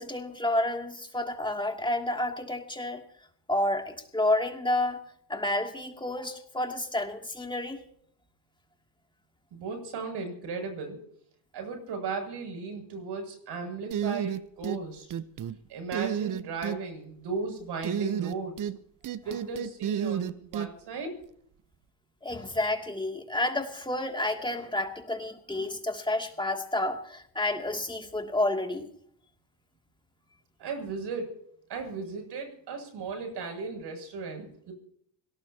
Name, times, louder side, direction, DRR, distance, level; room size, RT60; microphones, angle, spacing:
voice 1, 0.0-3.0 3.5-5.0 5.3-7.8 22.2-28.9, left 1 dB, 10° left, 3 dB, 2.7 m, -30 dB
voice 2, 9.5-11.0 11.5-15.1 15.7-18.7 19.2-21.1 30.6-31.3 31.7-34.7, right 4 dB, 60° right, 4 dB, 7.8 m, -36 dB
sound 1, 13.9-14.8 15.1-15.6 15.9-16.8 17.8-18.8 19.0-20.7, right 9 dB, 40° right, 1.0 m, -31 dB
25.5 x 18.5 x 2.9 m, 0.66 s
supercardioid pair, 85°, 46 cm